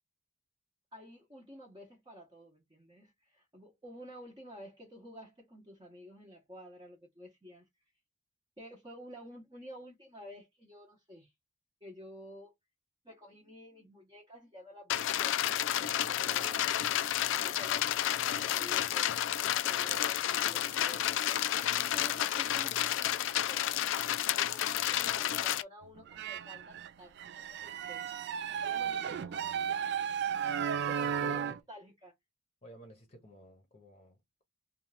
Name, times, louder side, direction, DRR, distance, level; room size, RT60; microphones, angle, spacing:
voice 1, 0.9-7.7 8.6-11.3 11.8-12.5 13.0-16.9 17.4-19.1 19.5-21.2 21.8-23.6 24.3-28.2 28.6-29.9 30.9-32.1, equal, 20° right, 0.8 m, -51 dB
sound 1, 14.9-25.6, left 11 dB, 60° left, 0.3 m, -31 dB
sound 2, 26.0-26.9 27.2-31.6, right 8 dB, 55° right, 0.3 m, -34 dB
voice 2, 31.0-31.6 32.6-34.4, left 1 dB, 30° left, 0.8 m, -53 dB
2.8 x 2.3 x 3.3 m
head